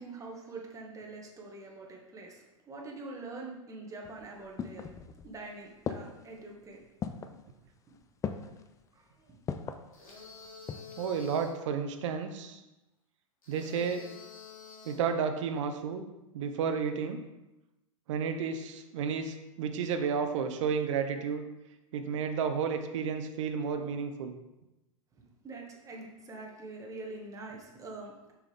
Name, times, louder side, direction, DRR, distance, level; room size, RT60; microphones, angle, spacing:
voice 1, 0.0-4.9 5.2-6.8 7.3-7.4 7.9-8.0 8.9-9.4 25.4-28.3, right 3 dB, 20° right, -1 dB, 1.7 m, -45 dB
sound 1, 4.0-5.4 5.9-6.4 7.0-7.4 8.2-8.7 9.5-9.9 10.4-11.0 11.3-11.4, left 6 dB, 20° left, 0.5 m, -37 dB
sound 2, 9.9-11.6 13.4-15.1, left 6 dB, 80° left, 2.2 m, -49 dB
voice 2, 11.0-12.6 13.5-14.0 14.8-16.1 16.3-17.2 18.1-21.4 21.9-24.4, right 6 dB, 60° right, 7 dB, 0.9 m, -32 dB
6.9 x 6.2 x 3.5 m, 0.98 s
hypercardioid pair, 100°, 17 cm